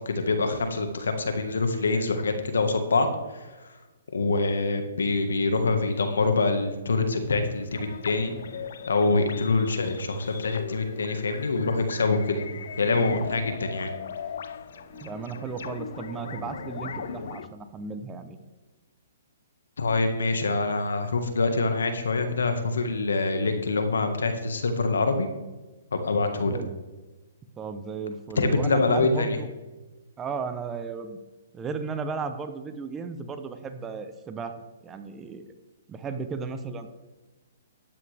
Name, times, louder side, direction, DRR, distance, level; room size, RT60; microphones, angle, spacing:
voice 1, 0.0-3.8 4.1-8.3 8.9-12.4 12.8-13.9 19.8-25.3 25.9-26.6 28.4-29.4, left 3 dB, 85° left, 7 dB, 1.7 m, -25 dB
sound 1, 7.1-17.4, right 1 dB, 5° left, 4.0 m, -46 dB
sound 2, 7.7-17.5, left 7 dB, 65° left, 0.6 m, -39 dB
voice 2, 15.0-18.4 26.5-26.7 27.6-29.5 30.2-31.2 31.5-34.5 34.8-35.5 35.9-36.9, right 5 dB, 15° right, 8 dB, 0.9 m, -35 dB
12.0 x 9.4 x 3.5 m, 1.2 s
hypercardioid pair, 140°, 0 cm